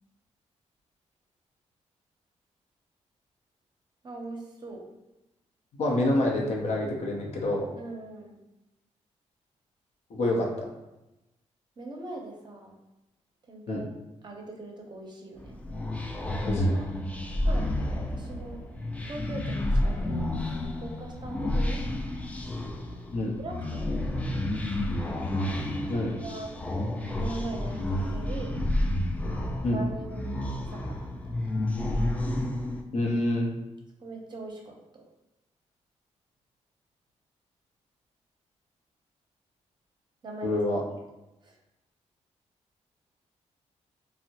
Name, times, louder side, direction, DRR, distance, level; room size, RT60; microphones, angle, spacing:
voice 1, 4.0-4.8 7.8-8.4 11.8-12.7 13.5-14.0 14.2-15.6 16.5-16.9 17.4-18.6 19.1-21.8 23.4-24.3 25.9-26.5 27.2-28.6 29.7-30.3 30.7-31.5 34.0-35.0 40.2-40.6 41.4-41.6, right 2 dB, 35° right, 0 dB, 0.6 m, -41 dB
voice 2, 5.8-7.7 10.1-10.7 13.7-13.8 16.4-16.8 23.1-23.3 25.9-26.1 29.6-29.8 32.9-33.5 40.4-40.8, left 1 dB, 65° left, -1 dB, 0.6 m, -27 dB
sound 1, 15.4-32.8, left 1 dB, 10° left, 0.3 m, -30 dB
3.5 x 2.0 x 2.8 m, 0.97 s
cardioid pair, 95°, 12 cm